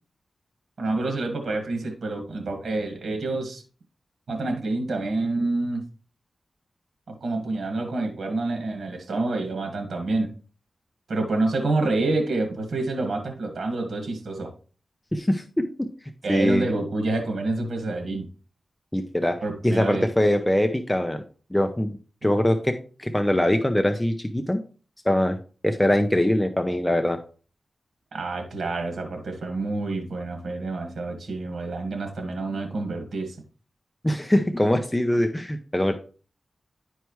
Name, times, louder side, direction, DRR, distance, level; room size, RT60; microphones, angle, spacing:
voice 1, 0.8-3.6 4.3-5.8 7.1-10.3 11.1-14.5 16.2-18.3 19.4-20.1 28.1-33.4, right 2 dB, 75° right, 3 dB, 1.8 m, -28 dB
voice 2, 15.1-15.9 16.3-16.7 18.9-19.4 19.6-21.2 21.5-24.6 25.1-25.4 25.6-27.2 34.0-36.0, left 1 dB, 10° left, 6 dB, 0.7 m, -23 dB
11.0 x 4.6 x 3.1 m, 0.39 s
cardioid pair, 70°, 0 cm